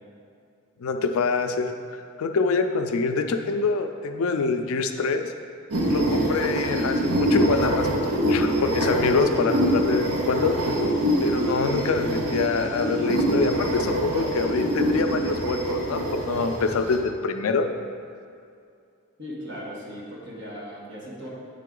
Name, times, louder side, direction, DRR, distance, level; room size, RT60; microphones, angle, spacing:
voice 1, 0.8-1.7 2.2-5.3 5.9-7.9 8.2-10.6 11.2-17.7, left 4 dB, 70° left, 6 dB, 0.4 m, -25 dB
sound 1, 5.7-17.0, right 1 dB, 80° right, 0.8 m, -24 dB
voice 2, 19.2-21.3, equal, 55° right, -5 dB, 1.4 m, -38 dB
8.4 x 3.7 x 3.7 m, 2.4 s
head